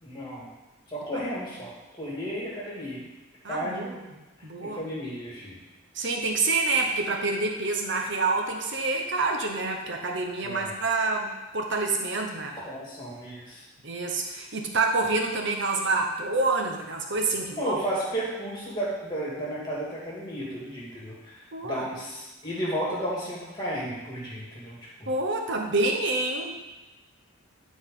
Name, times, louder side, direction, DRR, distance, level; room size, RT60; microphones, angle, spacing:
voice 1, 0.0-0.5 0.9-3.1 3.5-4.0 4.6-5.6 10.4-10.7 12.6-13.6 17.6-25.1, equal, 20° left, -6 dB, 2.3 m, -33 dB
voice 2, 3.4-3.9 4.4-4.8 5.9-12.6 13.8-17.7 21.5-21.9 25.1-26.6, right 3 dB, 55° right, 2 dB, 1.0 m, -27 dB
11.0 x 4.4 x 3.8 m, 1.1 s
head